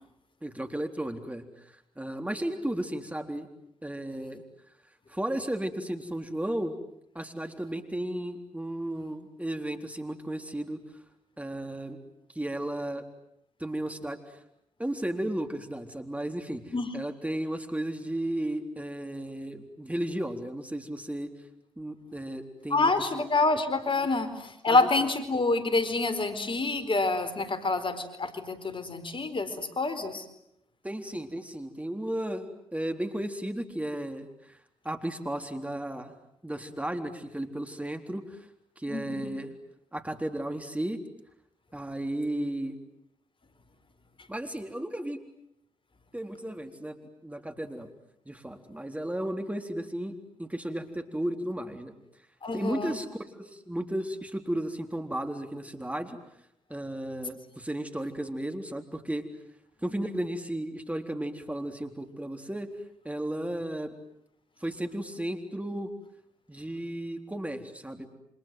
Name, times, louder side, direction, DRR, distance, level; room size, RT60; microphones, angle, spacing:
voice 1, 0.4-3.5 3.8-4.4 5.1-6.8 7.1-10.8 11.4-12.0 12.4-13.0 13.6-14.4 14.8-21.3 21.8-23.3 24.7-24.9 30.8-34.6 34.8-36.1 36.4-38.5 38.8-39.6 39.9-41.0 41.7-42.8 44.3-45.2 46.1-47.9 48.3-51.9 52.5-56.2 56.7-59.2 59.8-62.7 63.0-63.9 64.6-65.9 66.5-68.1, right 1 dB, 10° right, 6 dB, 3.9 m, -34 dB
voice 2, 22.7-30.2 38.9-39.3 52.4-53.0, left 3 dB, 45° left, 11 dB, 4.5 m, -27 dB
29.0 x 26.0 x 7.8 m, 0.77 s
hypercardioid pair, 40°, 12 cm